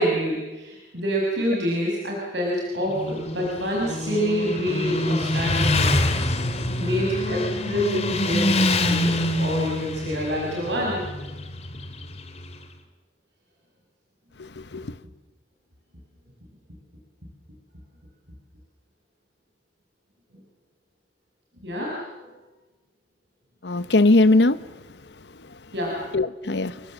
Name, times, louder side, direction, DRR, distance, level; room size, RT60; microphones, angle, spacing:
voice 1, 0.0-6.0 6.8-11.1 21.6-22.3 25.7-26.0, equal, 80° right, 5.6 m, -27 dB
Motorcycle, 2.8-12.6, left 1 dB, 40° left, 2.4 m, -25 dB
voice 2, 14.4-14.9 23.6-24.6 26.1-26.7, left 2 dB, 75° left, 1.0 m, -19 dB
29.0 x 22.5 x 7.5 m
head